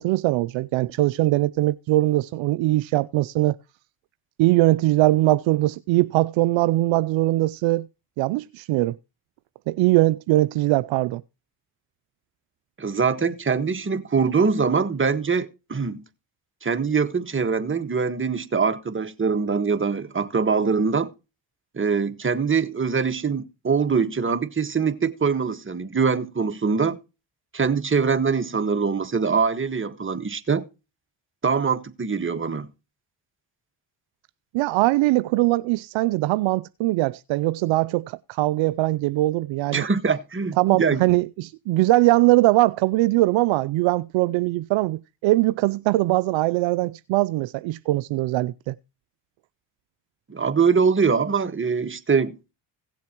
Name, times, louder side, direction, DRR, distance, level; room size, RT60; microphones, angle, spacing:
voice 1, 0.0-3.6 4.4-7.9 8.2-9.0 9.7-11.2 34.5-39.8 40.6-48.8, right 18 dB, 70° right, 0.5 m, -21 dB
voice 2, 12.8-16.0 16.6-21.1 21.7-27.0 27.5-30.6 31.4-32.7 39.7-41.0 50.3-52.4, right 5 dB, 25° right, 1.5 m, -23 dB
17.0 x 7.3 x 3.0 m
supercardioid pair, 65°, 48 cm